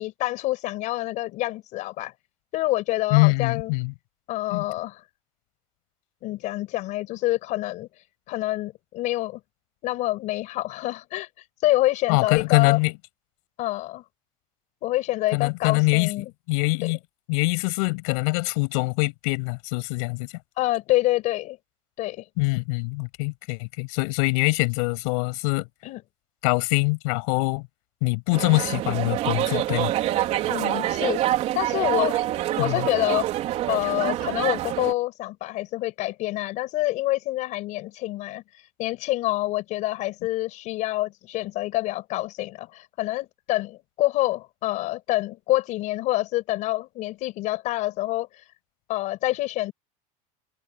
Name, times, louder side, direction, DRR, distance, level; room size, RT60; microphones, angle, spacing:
voice 1, 0.0-2.1 2.5-3.7 4.3-5.0 6.2-7.9 8.3-9.4 9.8-11.3 11.6-12.8 13.6-14.0 14.8-16.3 16.8-16.9 20.6-21.6 22.0-22.2 25.8-26.0 30.5-31.2 31.5-32.1 32.6-33.3 33.7-38.4 38.8-48.3 48.9-49.7, left 17 dB, 40° left, 6.5 m, -27 dB
voice 2, 3.1-3.9 4.5-4.6 12.1-12.9 15.3-16.1 16.5-17.0 17.3-20.3 22.4-25.7 26.4-27.6 28.0-29.9 32.6-32.9, left 31 dB, 60° left, 7.3 m, -23 dB
sound 1, 28.3-34.9, right 13 dB, 35° right, 3.9 m, -26 dB
cardioid pair, 175°, 19 cm